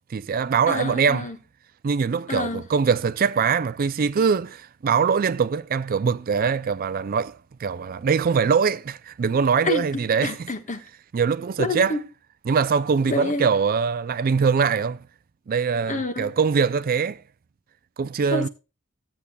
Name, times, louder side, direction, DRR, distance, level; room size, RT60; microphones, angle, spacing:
voice 1, 0.1-1.3 1.8-10.3 11.1-11.9 12.5-15.0 15.5-17.2 18.0-18.5, right 6 dB, 40° right, 0.4 m, -22 dB
voice 2, 0.7-1.4 2.3-2.6 9.6-10.8 11.6-12.1 13.1-13.5 15.9-16.3 18.3-18.5, left 2 dB, 35° left, 1.3 m, -28 dB
16.0 x 8.3 x 2.2 m
head